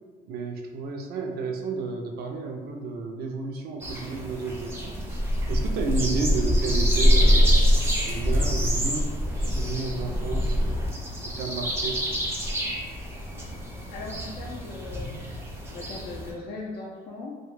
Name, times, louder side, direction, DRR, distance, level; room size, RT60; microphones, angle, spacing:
voice 1, 0.2-5.2 5.5-7.6 8.0-10.8 11.2-12.0, right 3 dB, 70° right, 3 dB, 0.4 m, -32 dB
sound 1, 3.8-16.3, equal, 15° right, 0.4 m, -25 dB
voice 2, 13.9-15.4 15.7-17.4, left 3 dB, 65° left, -4 dB, 0.4 m, -39 dB
2.2 x 2.1 x 3.0 m, 1.4 s
cardioid pair, 110°, 17 cm